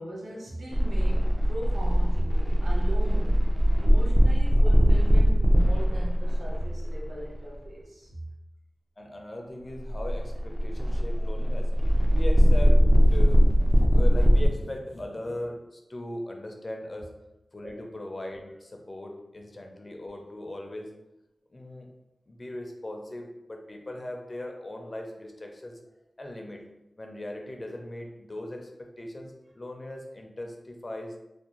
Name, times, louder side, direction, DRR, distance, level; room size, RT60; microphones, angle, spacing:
voice 1, 0.0-8.2 17.6-17.8, right 1 dB, 85° right, -4 dB, 0.7 m, -39 dB
sound 1, 0.7-7.4 9.7-14.5, equal, 35° right, 0.4 m, -21 dB
voice 2, 9.0-11.7 12.1-17.1 17.5-20.9 21.5-21.9 22.3-25.8 26.2-26.6 27.0-31.1, left 1 dB, 35° left, 2 dB, 0.4 m, -38 dB
2.5 x 2.0 x 2.9 m, 0.91 s
wide cardioid pair, 85°, 0 cm